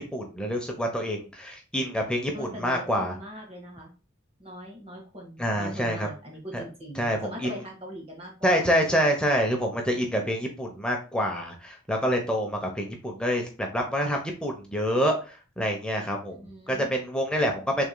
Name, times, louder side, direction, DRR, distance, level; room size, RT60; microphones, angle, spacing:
voice 1, 0.0-3.1 5.4-6.1 6.5-6.6 7.0-7.5 8.4-17.9, equal, 5° left, 1 dB, 0.8 m, -27 dB
voice 2, 2.3-3.9 4.4-8.7 16.2-16.9, equal, 30° right, -1 dB, 1.6 m, -41 dB
6.1 x 3.7 x 2.2 m, 0.33 s
head